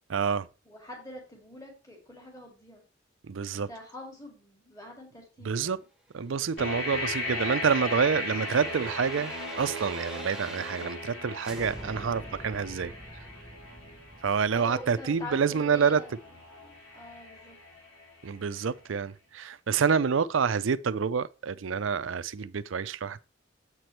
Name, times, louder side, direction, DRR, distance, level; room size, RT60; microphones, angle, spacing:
voice 1, 0.1-0.5 3.2-3.7 5.4-5.8 6.1-12.9 14.2-16.0 18.2-23.2, right 6 dB, 75° right, 0.5 m, -28 dB
voice 2, 0.7-2.8 3.5-5.8 14.5-17.6, left 1 dB, 20° left, 2.3 m, -45 dB
sound 1, 6.5-11.1 11.4-16.3 16.6-16.7, right 1 dB, 5° right, 1.2 m, -46 dB
sound 2, 6.6-18.4, left 2 dB, 85° left, 4.7 m, -38 dB
7.9 x 6.0 x 3.2 m
head